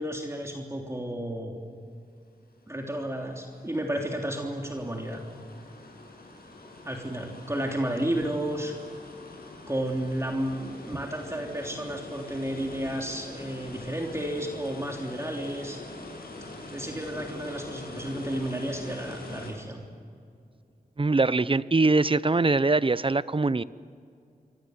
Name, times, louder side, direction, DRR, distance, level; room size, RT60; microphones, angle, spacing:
voice 1, 0.0-1.6 2.7-5.2 6.8-8.7 9.7-15.8 16.7-19.8, right 1 dB, 15° right, 1 dB, 3.2 m, -32 dB
sound 1, 2.7-19.5, left 2 dB, 75° left, 7.4 m, -44 dB
voice 2, 21.0-23.6, right 3 dB, 35° right, 17 dB, 0.8 m, -23 dB
29.5 x 24.5 x 8.1 m, 2.3 s
wide cardioid pair, 65°, 16 cm